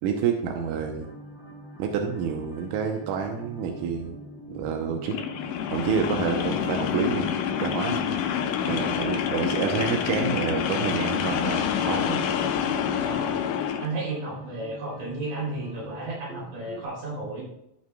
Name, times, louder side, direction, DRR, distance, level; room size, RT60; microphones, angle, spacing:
voice 1, 0.0-1.1 1.8-4.2 4.5-5.2 5.7-7.3 7.6-8.1 8.7-12.2, right 7 dB, 75° right, 3 dB, 2.0 m, -28 dB
sound 1, 0.8-16.9, right 1 dB, ahead, 1.4 m, -44 dB
sound 2, 5.0-13.9, left 8 dB, 80° left, 2.1 m, -27 dB
voice 2, 8.6-8.9 13.0-13.4 13.8-17.4, right 2 dB, 60° right, -6 dB, 4.6 m, -33 dB
15.0 x 5.7 x 2.2 m, 0.81 s
omnidirectional pair, 4.1 m